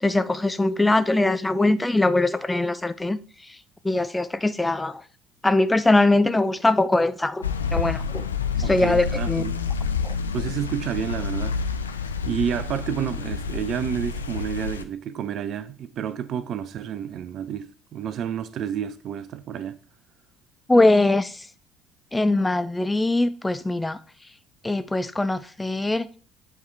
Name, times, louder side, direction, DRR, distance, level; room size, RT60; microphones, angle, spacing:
voice 1, 0.0-3.2 3.8-5.0 5.4-7.4 7.7-8.2 8.7-9.5 10.0-10.1 20.7-21.3 22.1-24.0 24.6-26.1, left 2 dB, 15° left, 0.5 m, -21 dB
sound 1, 7.4-14.8, left 5 dB, 85° left, 0.4 m, -28 dB
voice 2, 8.6-9.6 10.3-11.6 12.3-19.8, right 9 dB, 50° right, 0.5 m, -30 dB
8.3 x 4.5 x 3.3 m
figure-of-eight pair, 55°, 0 cm